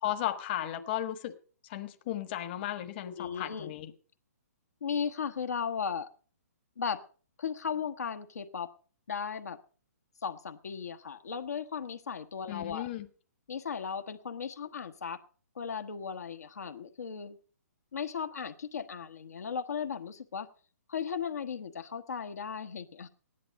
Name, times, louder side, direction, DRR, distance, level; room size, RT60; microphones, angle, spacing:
voice 1, 0.0-1.3 1.7-3.9 12.5-13.1, left 12 dB, 40° left, 1.2 m, -35 dB
voice 2, 3.0-3.7 4.8-6.1 6.8-7.0 7.4-8.7 9.1-9.6 10.2-12.9 13.5-15.2 15.5-17.4 17.9-20.5 20.9-23.1, left 6 dB, 70° left, 1.2 m, -36 dB
15.5 x 11.0 x 5.2 m
figure-of-eight pair, 130°, 9 cm